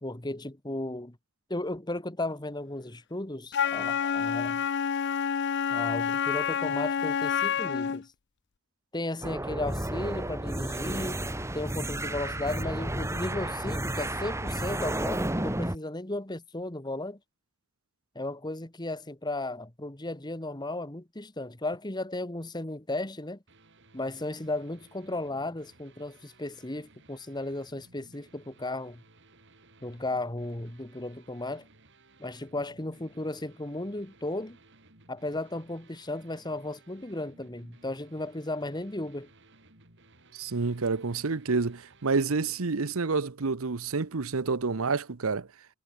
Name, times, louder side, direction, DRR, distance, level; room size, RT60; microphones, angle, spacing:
voice 1, 0.0-1.2 1.5-4.6 5.7-8.1 8.9-11.2 11.5-17.2 18.1-23.4 23.9-29.0 29.8-31.6 32.2-34.6 35.1-39.3, left 2 dB, 20° left, 1.6 m, -35 dB
Wind instrument woodwind instrument, 3.5-8.0, left 7 dB, 55° left, 0.5 m, -28 dB
sound 1, 9.2-15.8, right 1 dB, 15° right, 2.1 m, -32 dB
sound 2, 23.5-42.7, right 2 dB, 55° right, 7.4 m, -59 dB
voice 2, 40.3-45.5, right 4 dB, 75° right, 0.9 m, -28 dB
head